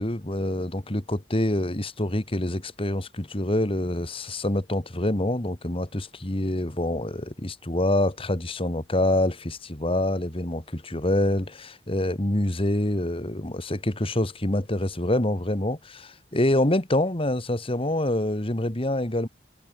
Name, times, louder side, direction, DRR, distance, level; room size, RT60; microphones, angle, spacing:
voice 1, 0.0-19.3, left 1 dB, 30° left, 2.1 m, -26 dB
head